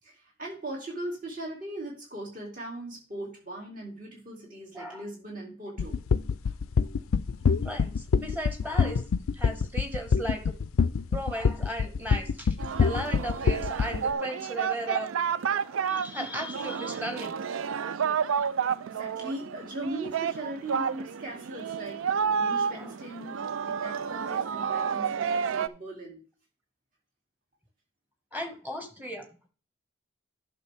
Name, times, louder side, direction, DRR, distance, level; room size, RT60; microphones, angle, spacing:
voice 1, 0.0-6.0 6.4-6.5 18.8-26.2, right 1 dB, 40° right, -1 dB, 2.7 m, -39 dB
sound 1, 5.8-14.1, left 5 dB, 90° left, 0.4 m, -24 dB
voice 2, 7.6-9.1 9.3-10.5 11.1-12.5 12.8-15.1 15.9-17.3 20.7-20.9 22.7-22.9 28.3-29.3, equal, 10° right, 4 dB, 1.4 m, -36 dB
Singing, 12.6-25.7, right 7 dB, 75° right, 0.4 m, -30 dB
11.5 x 6.3 x 3.4 m, 0.37 s
head